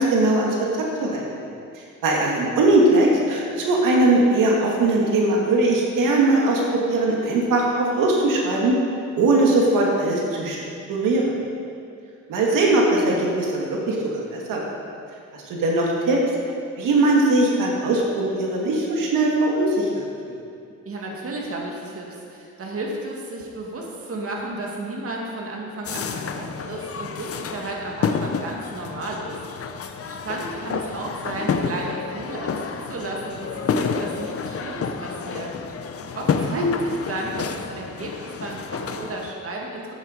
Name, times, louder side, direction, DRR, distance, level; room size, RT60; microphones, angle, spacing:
voice 1, 0.0-1.4 1.7-8.8 9.2-10.6 10.9-11.3 12.3-14.8 15.3-16.2 16.8-20.4 36.5-36.7, right 2 dB, 90° right, -2 dB, 1.9 m, -20 dB
voice 2, 20.9-35.5 36.1-37.5 37.8-39.9, right 2 dB, 45° right, -1 dB, 2.1 m, -33 dB
sound 1, 25.8-39.3, left 6 dB, 45° left, 0.8 m, -29 dB
12.5 x 9.0 x 5.1 m, 2.5 s
cardioid pair, 95°, 31 cm